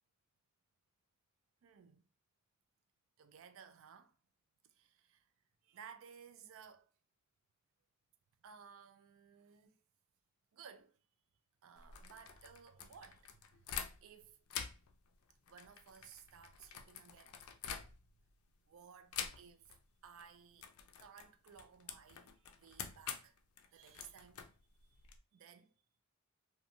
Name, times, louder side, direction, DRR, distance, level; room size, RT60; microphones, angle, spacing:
voice 1, 1.6-2.0 3.2-4.1 4.7-5.3 5.6-6.9 8.4-9.8 10.5-11.0 11.6-14.4 15.5-17.9 18.6-19.8 20.0-20.7 21.0-23.4 23.7-24.4 24.8-25.0 25.3-25.7, right 7 dB, 65° right, 0.4 m, -58 dB
sound 1, 11.8-14.2 14.5-18.3 19.1-19.8 20.0-20.3 20.6-25.2, left 7 dB, 75° left, 0.4 m, -47 dB
2.8 x 2.3 x 2.5 m
head